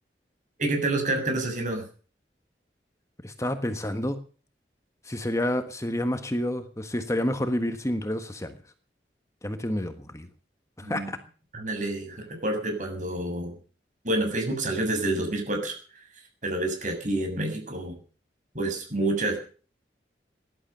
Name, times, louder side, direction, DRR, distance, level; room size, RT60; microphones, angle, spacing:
voice 1, 0.6-1.9 10.8-11.1 11.5-13.5 14.0-15.8 16.4-18.0 18.5-19.4, right 2 dB, 45° right, 4 dB, 6.9 m, -28 dB
voice 2, 3.2-4.2 5.0-8.6 9.4-10.3 10.8-11.2, left 1 dB, 15° left, 8 dB, 1.4 m, -29 dB
17.5 x 12.0 x 6.8 m, 0.40 s
head